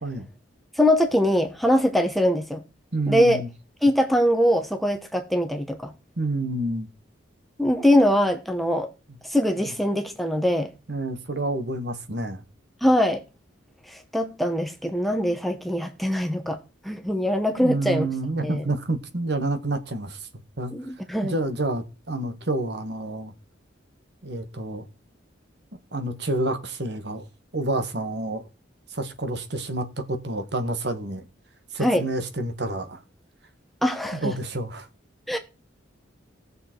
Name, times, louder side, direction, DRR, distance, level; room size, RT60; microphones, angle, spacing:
voice 1, 0.8-2.6 3.1-3.4 3.8-5.9 7.6-8.9 9.2-10.7 12.8-13.2 13.9-16.6 16.8-18.1 18.4-18.6 20.7-21.3 31.8-32.0 33.8-34.3 35.3-35.4, equal, ahead, 1.0 m, -22 dB
voice 2, 2.9-3.5 6.2-6.9 10.9-12.4 17.6-20.3 20.6-20.7 21.2-23.3 24.2-24.8 25.9-27.3 27.5-28.5 28.9-31.3 31.7-33.0 34.1-34.9, right 2 dB, 55° right, 1.5 m, -28 dB
16.5 x 6.8 x 4.5 m
head